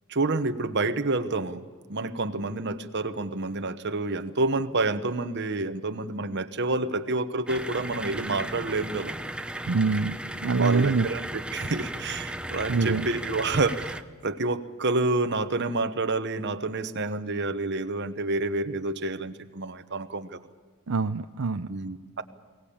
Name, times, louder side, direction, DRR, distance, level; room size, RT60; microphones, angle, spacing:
voice 1, 0.1-1.6 1.9-9.1 10.6-20.4 21.7-22.2, right 2 dB, 50° right, 10 dB, 1.1 m, -28 dB
sound 1, 7.5-14.0, right 1 dB, 5° right, 0.7 m, -36 dB
voice 2, 9.7-11.1 12.7-13.1 20.9-21.7, right 4 dB, 65° right, 8 dB, 0.7 m, -25 dB
23.0 x 18.5 x 8.6 m, 1.5 s
head